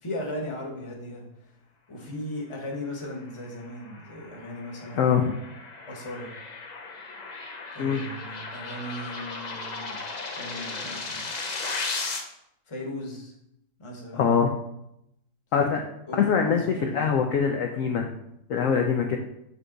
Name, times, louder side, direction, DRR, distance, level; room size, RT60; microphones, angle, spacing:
voice 1, 0.0-1.2 1.9-5.2 5.8-6.3 7.7-10.0 10.4-11.3 12.7-13.3 13.8-14.3 15.5-15.8 16.1-17.1, left 1 dB, 20° left, 0 dB, 1.0 m, -37 dB
sound 1, 3.3-12.2, left 3 dB, 90° left, 0.3 m, -36 dB
voice 2, 4.9-5.4 7.8-8.0 14.1-14.5 15.5-15.8 16.1-18.1 18.5-19.2, left 6 dB, 70° left, 2 dB, 0.8 m, -23 dB
7.4 x 3.4 x 3.9 m, 0.80 s
omnidirectional pair, 1.8 m